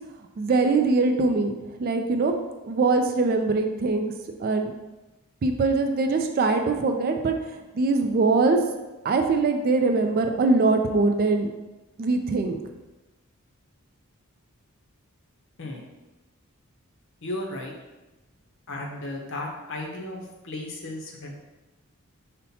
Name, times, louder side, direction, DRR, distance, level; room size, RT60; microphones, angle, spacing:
voice 1, 0.4-2.3 2.6-4.1 4.4-4.7 5.4-7.4 7.7-8.6 9.0-11.5 12.0-12.6, right 3 dB, 45° right, 5 dB, 0.3 m, -22 dB
voice 2, 17.2-17.7 18.7-21.3, left 1 dB, 60° left, 0 dB, 0.7 m, -34 dB
5.5 x 2.1 x 2.7 m, 1.1 s
head